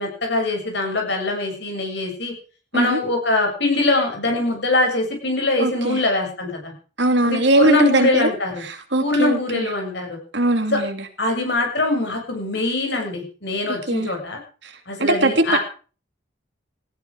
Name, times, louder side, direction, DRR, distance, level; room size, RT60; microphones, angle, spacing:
voice 1, 0.0-2.3 2.7-6.7 7.2-8.6 9.0-10.2 10.7-10.8 11.2-14.4 14.9-15.6, left 2 dB, 60° left, 2 dB, 6.8 m, -22 dB
voice 2, 5.6-6.0 7.0-8.3 8.6-9.7 10.3-11.0 13.9-14.1 14.6-14.7 15.0-15.6, right 2 dB, 65° right, 6 dB, 3.0 m, -20 dB
17.5 x 15.5 x 4.9 m, 0.39 s
head